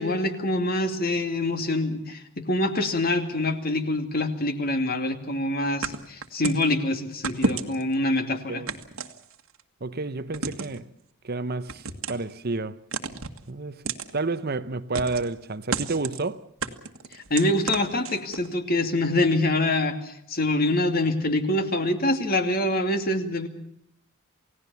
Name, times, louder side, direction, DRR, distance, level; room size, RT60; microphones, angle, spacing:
voice 1, 0.0-8.6 17.1-23.5, left 1 dB, 45° left, 2.5 m, -25 dB
sound 1, 5.8-6.7 7.2-7.9 8.7-9.6 10.3-10.8 11.7-12.3 12.9-13.4 13.9-14.1 14.9-15.3 15.7-16.2 16.6-18.5, right 4 dB, 75° right, 1.8 m, -31 dB
voice 2, 9.8-10.9 11.2-12.8 13.5-16.4, right 3 dB, 45° right, 0.9 m, -30 dB
29.0 x 17.5 x 7.0 m
head